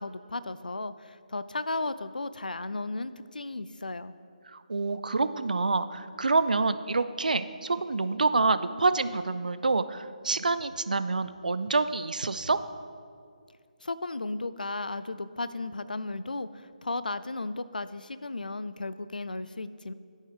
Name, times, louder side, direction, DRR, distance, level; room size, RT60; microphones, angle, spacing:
voice 1, 0.0-4.1 13.8-19.9, left 2 dB, 80° left, 14 dB, 0.3 m, -35 dB
voice 2, 4.5-12.6, right 3 dB, 70° right, 12 dB, 0.3 m, -27 dB
11.5 x 4.5 x 3.4 m, 2.2 s
figure-of-eight pair, 150°, 5 cm